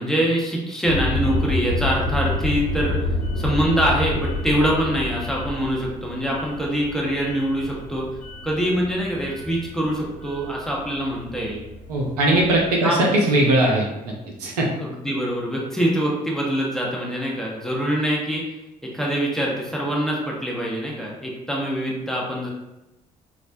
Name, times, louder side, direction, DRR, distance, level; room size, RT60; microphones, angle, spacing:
voice 1, 0.0-3.0 3.4-8.1 8.4-11.6 12.3-12.4 12.8-13.0 14.8-18.4 18.9-22.5, equal, ahead, -3 dB, 0.7 m, -24 dB
sound 1, 0.9-12.7, left 2 dB, 85° left, 0.4 m, -29 dB
voice 2, 11.9-14.1 14.4-14.7, right 1 dB, 80° right, -2 dB, 0.5 m, -19 dB
2.4 x 2.0 x 2.5 m, 0.95 s
figure-of-eight pair, 45°, 20 cm